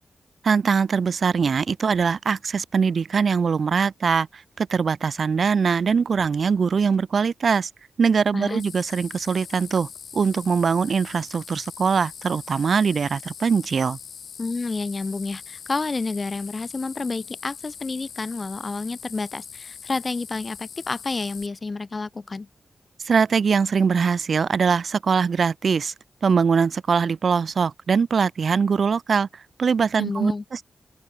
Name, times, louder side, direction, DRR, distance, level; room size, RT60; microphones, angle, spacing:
voice 1, 0.4-7.7 8.0-14.0 23.0-25.9 26.2-30.6, right 5 dB, 65° right, 1.6 m, -22 dB
sound 1, 8.6-21.5, left 7 dB, 80° left, 5.4 m, -42 dB
voice 2, 14.4-22.5 30.0-30.4, left 3 dB, 40° left, 1.0 m, -29 dB
open air
cardioid pair, 70°, 0 cm